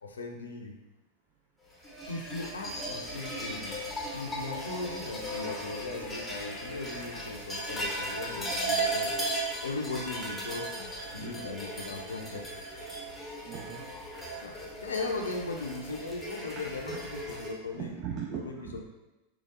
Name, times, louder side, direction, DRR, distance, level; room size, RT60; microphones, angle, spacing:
voice 1, 0.0-0.7 2.1-3.8 4.1-9.4 9.6-12.4 14.4-18.0 18.3-18.8, left 3 dB, 70° left, 2 dB, 0.5 m, -38 dB
sound 1, 1.8-17.5, right 1 dB, 5° left, 0.8 m, -36 dB
voice 2, 13.4-14.2 16.9-17.0 17.7-18.8, right 7 dB, 35° right, -3 dB, 0.5 m, -39 dB
3.8 x 3.1 x 2.6 m, 1.0 s
figure-of-eight pair, 90°, 0 cm